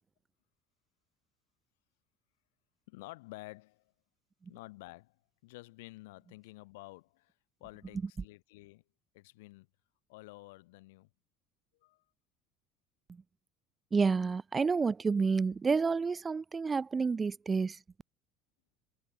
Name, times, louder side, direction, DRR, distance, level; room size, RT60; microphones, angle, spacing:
voice 1, 2.9-3.9 4.5-7.3 7.6-8.8 9.1-9.7 10.1-11.1 11.7-12.0, left 21 dB, 70° left, 5.3 m, -51 dB
voice 2, 13.9-17.8, right 5 dB, 25° right, 0.6 m, -29 dB
figure-of-eight pair, 65°, 0 cm